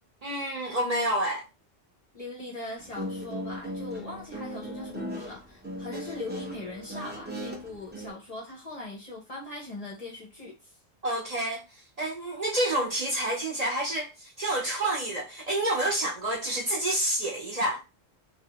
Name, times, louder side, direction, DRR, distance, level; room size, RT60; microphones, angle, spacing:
voice 1, 0.2-1.4 11.0-11.6 12.0-17.8, right 1 dB, 40° right, 0.7 m, -28 dB
voice 2, 2.1-10.8, left 2 dB, 40° left, 0.6 m, -40 dB
Guitar, 2.8-8.1, equal, 15° right, 0.3 m, -38 dB
2.6 x 2.1 x 2.8 m
omnidirectional pair, 1.1 m